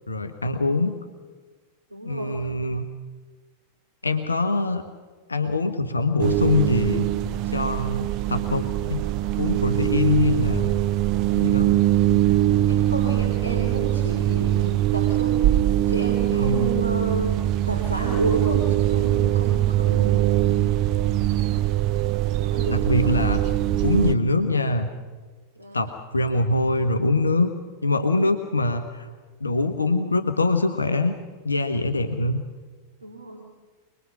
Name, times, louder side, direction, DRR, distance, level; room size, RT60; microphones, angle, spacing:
voice 1, 0.1-1.0 2.0-2.8 4.0-4.9 5.3-7.1 7.5-9.0 9.4-10.7 11.3-11.7 12.1-12.2 16.3-16.7 22.7-23.4 23.8-24.9 25.7-27.5 27.8-29.1 29.4-31.1 31.4-32.4, left 2 dB, 80° left, 8 dB, 1.2 m, -23 dB
voice 2, 0.6-0.9 1.9-2.4 12.7-17.4 17.7-20.3 22.4-23.3 25.5-25.8 32.0-32.2 33.0-33.5, right 2 dB, 80° right, 0 dB, 3.3 m, -32 dB
sound 1, 6.2-24.2, right 13 dB, 40° right, 0.8 m, -22 dB
24.5 x 20.5 x 6.1 m, 1.4 s
figure-of-eight pair, 90°, 0 cm